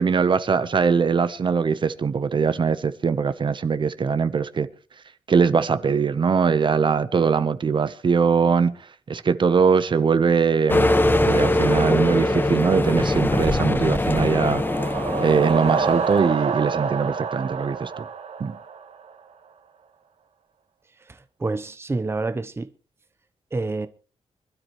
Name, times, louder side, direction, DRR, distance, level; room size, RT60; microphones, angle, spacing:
voice 1, 0.0-4.7 5.3-8.8 9.1-14.6 15.2-18.0 18.4-18.6, right 5 dB, 45° right, 0.9 m, -21 dB
sound 1, 10.7-16.3, left 1 dB, 15° left, 1.4 m, -22 dB
sound 2, 14.3-19.1, right 5 dB, 65° right, 2.2 m, -27 dB
voice 2, 21.1-22.7 23.5-23.9, right 3 dB, 20° right, 0.8 m, -28 dB
25.5 x 12.5 x 3.1 m
wide cardioid pair, 135°, 12 cm